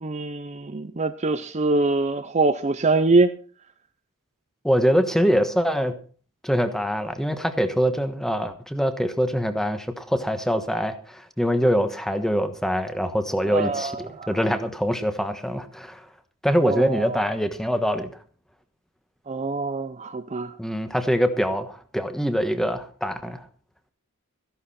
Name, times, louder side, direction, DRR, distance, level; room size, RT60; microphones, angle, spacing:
voice 1, 0.0-3.3 13.5-14.3 16.6-17.2 19.3-20.5, right 3 dB, 30° right, 10 dB, 0.6 m, -24 dB
voice 2, 4.6-5.9 6.4-16.0 16.4-18.1 20.6-23.4, equal, ahead, 9 dB, 1.2 m, -24 dB
14.5 x 11.5 x 4.3 m, 0.41 s
head